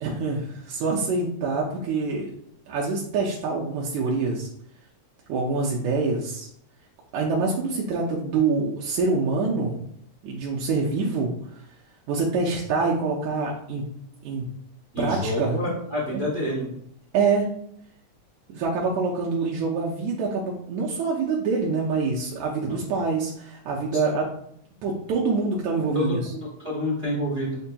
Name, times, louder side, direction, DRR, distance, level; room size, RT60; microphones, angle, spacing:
voice 1, 0.0-2.3 2.7-4.5 5.3-6.5 7.1-9.9 10.2-11.3 12.1-13.8 14.2-14.5 15.0-15.6 16.1-16.2 17.1-17.5 18.5-24.3 24.8-26.3, right 4 dB, 80° right, -3 dB, 2.0 m, -25 dB
voice 2, 14.9-16.7 22.6-22.7 25.9-27.6, left 1 dB, 55° right, -4 dB, 0.7 m, -28 dB
8.0 x 2.7 x 2.2 m, 0.70 s
omnidirectional pair, 3.3 m